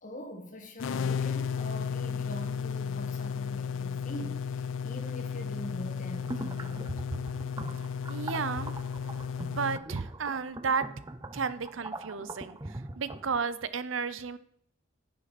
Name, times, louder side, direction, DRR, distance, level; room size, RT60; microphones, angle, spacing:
voice 1, 0.0-6.9, equal, 40° left, 1.8 m, -43 dB
sound 1, 0.8-9.8, left 6 dB, 70° left, 0.3 m, -34 dB
sound 2, 6.2-13.4, right 2 dB, 20° right, 0.5 m, -41 dB
voice 2, 8.1-8.7 9.4-10.9 11.3-14.4, right 5 dB, 75° right, 0.7 m, -33 dB
10.0 x 7.4 x 4.2 m
head